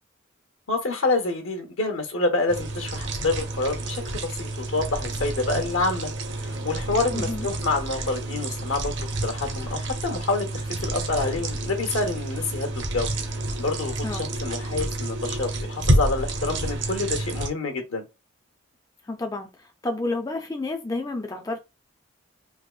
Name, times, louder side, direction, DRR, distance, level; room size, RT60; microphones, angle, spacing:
voice 1, 0.7-6.1 6.4-8.9 9.2-18.1, left 3 dB, 80° left, 0.8 m, -27 dB
sound 1, 2.5-17.5, right 1 dB, 60° right, 0.8 m, -29 dB
voice 2, 7.1-7.5 14.0-14.2 19.1-21.6, left 2 dB, 15° left, 0.4 m, -30 dB
3.4 x 2.9 x 2.4 m
head